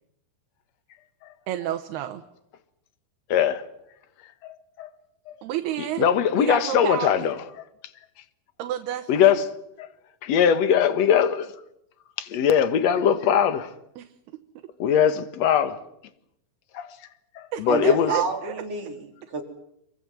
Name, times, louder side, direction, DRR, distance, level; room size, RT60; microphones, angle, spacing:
voice 1, 1.5-2.2 5.4-6.1 6.3-7.3 8.6-9.4 14.0-14.1 17.5-18.5, right 11 dB, 85° right, 3.1 m, -31 dB
voice 2, 3.3-3.6 4.4-4.9 5.3-5.4 5.8-7.4 9.1-9.5 9.8-9.9 10.2-11.5 12.2-13.7 14.8-15.8 16.7-16.9 17.4-18.1, left 8 dB, 55° left, 2.1 m, -21 dB
voice 3, 17.7-19.4, right 5 dB, 40° right, 4.5 m, -29 dB
26.5 x 24.0 x 7.6 m
omnidirectional pair, 4.5 m